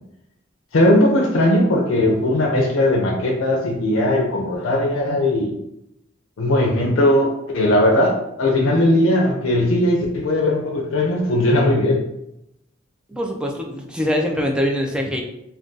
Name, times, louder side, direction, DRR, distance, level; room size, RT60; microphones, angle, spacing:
voice 1, 0.7-5.6 6.4-12.0, left 1 dB, 90° left, 0 dB, 0.5 m, -18 dB
voice 2, 13.1-15.2, equal, 5° right, 1 dB, 0.3 m, -23 dB
2.5 x 2.3 x 3.7 m, 0.82 s
head